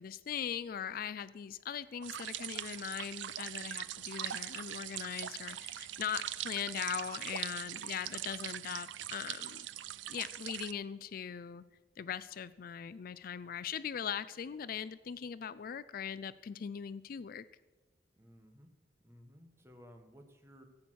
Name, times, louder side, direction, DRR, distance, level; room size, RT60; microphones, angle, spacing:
voice 1, 0.0-9.7 10.1-11.6 12.0-17.4, left 8 dB, 50° left, 16 dB, 0.4 m, -40 dB
sound 1, 2.0-10.7, right 12 dB, 85° right, 0.4 m, -42 dB
voice 2, 18.2-18.7 19.0-20.6, equal, 15° right, 5 dB, 1.3 m, -57 dB
15.0 x 8.5 x 6.3 m, 1.2 s
head